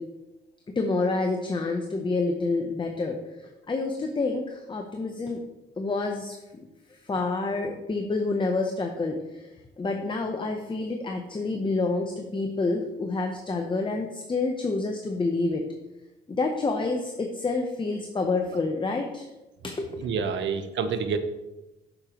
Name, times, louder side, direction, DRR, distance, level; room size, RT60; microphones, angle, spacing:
voice 1, 0.8-3.2 3.7-5.4 5.8-6.4 7.1-9.2 9.8-15.6 16.3-19.3 19.6-19.9, left 3 dB, 25° left, 4 dB, 0.8 m, -28 dB
voice 2, 20.0-21.2, right 6 dB, 65° right, 9 dB, 0.8 m, -28 dB
8.7 x 6.6 x 3.0 m, 1.0 s
cardioid pair, 90°, 20 cm